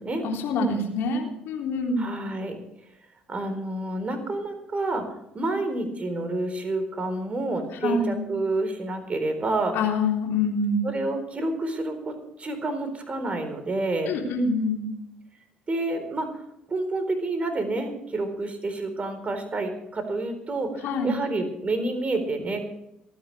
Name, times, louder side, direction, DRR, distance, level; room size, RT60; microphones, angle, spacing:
voice 1, 0.2-2.1 7.8-8.2 9.7-10.9 14.1-14.8 20.8-21.2, left 2 dB, 55° left, 1 dB, 3.6 m, -25 dB
voice 2, 2.0-2.6 3.3-5.0 5.3-9.8 10.8-14.1 15.7-16.4 16.7-22.7, right 2 dB, 30° right, 8 dB, 4.1 m, -29 dB
27.5 x 10.5 x 3.4 m, 0.81 s
figure-of-eight pair, 50°, 4 cm